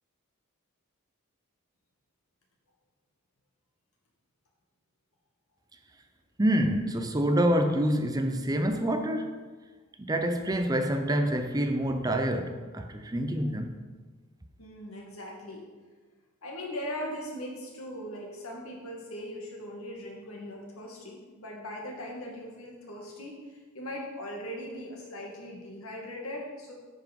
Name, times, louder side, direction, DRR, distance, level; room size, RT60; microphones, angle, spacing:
voice 1, 6.4-9.3 10.0-13.8, right 1 dB, 20° right, 0.7 m, -27 dB
voice 2, 14.6-15.7 16.4-26.7, left 1 dB, 85° left, 2.2 m, -39 dB
9.4 x 5.9 x 5.4 m
head